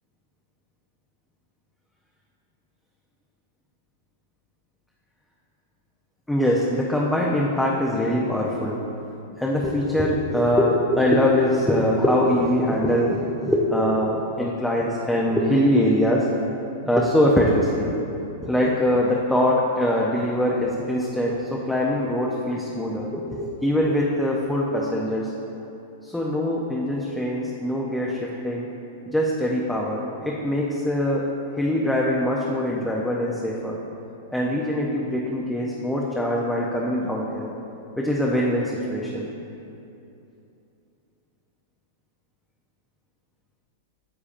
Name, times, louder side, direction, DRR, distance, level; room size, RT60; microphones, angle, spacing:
voice 1, 6.3-8.8 9.3-16.3 16.8-17.9 18.4-25.3 26.0-28.7 29.1-31.3 31.5-33.8 34.3-37.5 38.0-39.3, left 1 dB, 5° left, -3 dB, 0.6 m, -23 dB
9.8 x 6.8 x 2.5 m, 2.8 s
hypercardioid pair, 140°, 0 cm